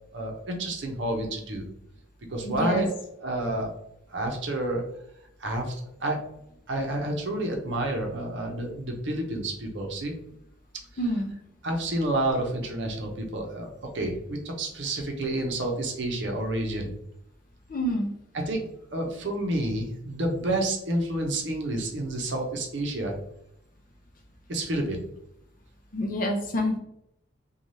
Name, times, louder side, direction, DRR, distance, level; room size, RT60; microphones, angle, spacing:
voice 1, 0.1-1.6 2.3-2.9 3.2-3.7 4.1-4.8 5.4-6.2 6.7-10.1 11.6-16.9 18.5-18.6 18.9-23.1 24.5-25.0, right 1 dB, 65° right, 2 dB, 0.6 m, -29 dB
voice 2, 2.4-2.9 11.0-11.3 17.7-18.1 25.9-26.8, left 1 dB, 45° left, 2 dB, 0.4 m, -27 dB
3.1 x 2.3 x 2.6 m, 0.78 s
head